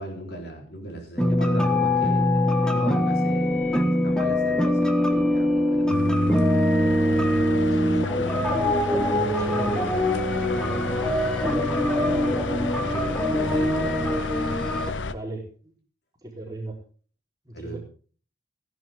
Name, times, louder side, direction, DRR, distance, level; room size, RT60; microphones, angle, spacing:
voice 1, 0.0-6.0 10.6-11.3 12.0-14.2 17.5-17.8, right 1 dB, 60° left, 2 dB, 4.0 m, -37 dB
sound 1, 1.2-14.9, left 1 dB, 5° left, 1.5 m, -23 dB
sound 2, 5.9-15.1, left 2 dB, 85° left, 0.8 m, -30 dB
voice 2, 7.7-8.5 9.1-10.0 15.0-15.7 16.2-16.7 17.4-17.8, right 2 dB, 20° right, -1 dB, 3.9 m, -37 dB
15.5 x 11.0 x 3.7 m, 0.40 s
head